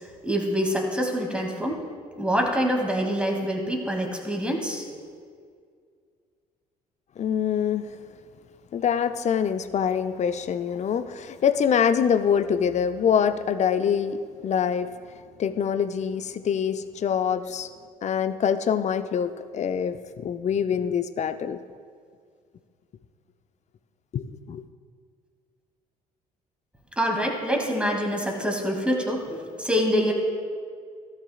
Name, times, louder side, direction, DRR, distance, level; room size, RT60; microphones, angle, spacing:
voice 1, 0.2-1.8 2.2-4.8 27.0-30.1, equal, 5° right, 1 dB, 2.3 m, -25 dB
voice 2, 7.2-7.9 8.7-14.9 15.4-17.7 18.0-21.6 24.1-24.6, left 7 dB, 35° left, 11 dB, 0.6 m, -25 dB
16.5 x 6.6 x 2.4 m, 2.1 s
figure-of-eight pair, 45°, 19 cm